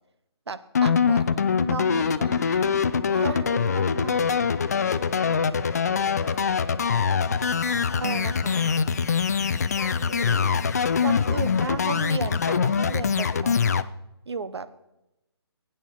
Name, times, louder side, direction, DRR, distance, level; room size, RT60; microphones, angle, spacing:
voice 1, 0.5-2.3 3.2-4.2 8.0-8.6 11.0-13.6 14.3-14.7, right 4 dB, 75° right, 13 dB, 1.0 m, -34 dB
sound 1, 0.7-13.8, left 6 dB, 35° left, 0.5 m, -23 dB
voice 2, 1.9-2.8 3.1-7.1 9.7-10.6 11.2-11.7, left 1 dB, 5° right, -11 dB, 4.9 m, -42 dB
19.5 x 8.9 x 4.6 m, 0.93 s
hypercardioid pair, 170°, 14 cm